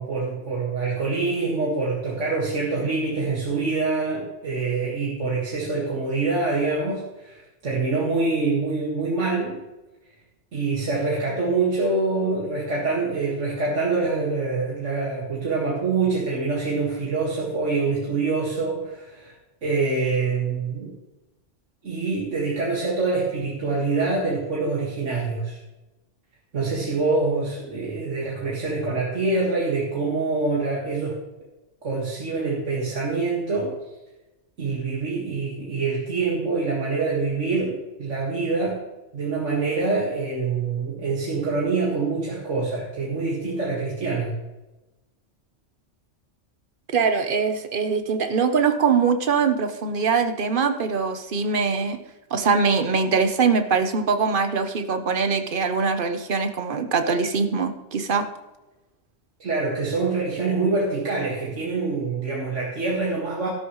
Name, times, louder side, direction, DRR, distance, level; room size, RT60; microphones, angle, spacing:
voice 1, 0.0-9.6 10.5-19.3 19.6-20.9 21.8-25.6 26.5-31.2 31.8-33.8 34.6-38.8 39.1-44.4 59.4-63.5, right 3 dB, 75° right, -4 dB, 2.3 m, -25 dB
voice 2, 46.9-52.0 52.3-58.2, right 5 dB, 50° right, 7 dB, 1.1 m, -22 dB
13.0 x 12.0 x 3.2 m, 1.1 s
omnidirectional pair, 1.3 m